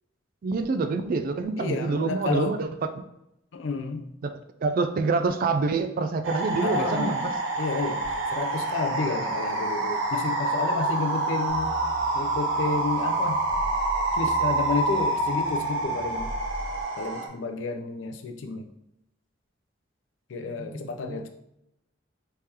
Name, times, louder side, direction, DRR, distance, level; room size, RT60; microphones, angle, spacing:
voice 1, 0.4-2.7 3.0-3.1 4.2-4.3 4.6-7.4 20.5-21.3, right 4 dB, 50° right, 9 dB, 0.3 m, -27 dB
voice 2, 1.6-2.6 3.5-4.1 6.6-7.3 7.6-8.0 8.3-11.7 12.1-13.4 14.1-16.3 17.0-18.7 20.3-21.3, left 4 dB, 75° left, 6 dB, 0.4 m, -31 dB
sound 1, 6.2-17.3, right 2 dB, 90° right, 0.7 m, -27 dB
sound 2, 11.5-16.8, right 1 dB, 50° left, 1.0 m, -41 dB
3.5 x 3.3 x 2.8 m, 0.83 s
head